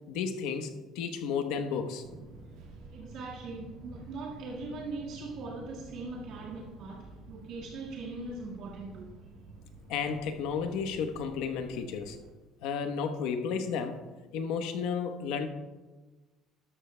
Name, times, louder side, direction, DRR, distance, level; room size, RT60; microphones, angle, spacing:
voice 1, 0.1-2.0 9.9-12.2 12.6-14.0 14.3-15.5, left 6 dB, 80° left, 1.0 m, -32 dB
Fixed-wing aircraft airplane, 2.0-12.3, right 3 dB, 80° right, 1.6 m, -50 dB
voice 2, 2.9-9.2, right 3 dB, 55° right, 1.7 m, -41 dB
12.5 x 12.0 x 2.2 m
cardioid pair, 180°, 0 cm